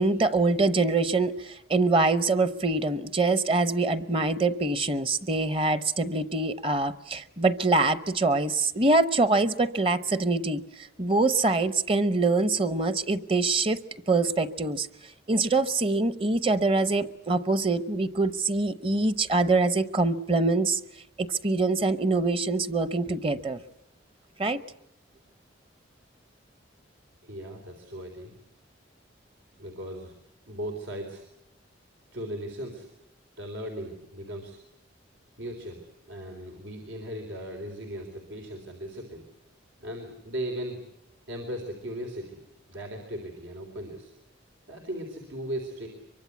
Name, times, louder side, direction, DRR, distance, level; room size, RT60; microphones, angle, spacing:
voice 1, 0.0-13.8 14.1-14.9 15.3-20.8 21.2-23.6 24.4-24.6, right 3 dB, 30° right, 13 dB, 0.9 m, -24 dB
voice 2, 27.2-28.3 29.6-30.1 30.5-31.3 32.1-32.9 33.4-34.6 35.4-39.2 39.8-40.8 41.3-42.4 42.7-44.1 44.7-45.9, equal, 85° right, 2 dB, 3.8 m, -37 dB
24.5 x 23.5 x 8.3 m, 0.80 s
head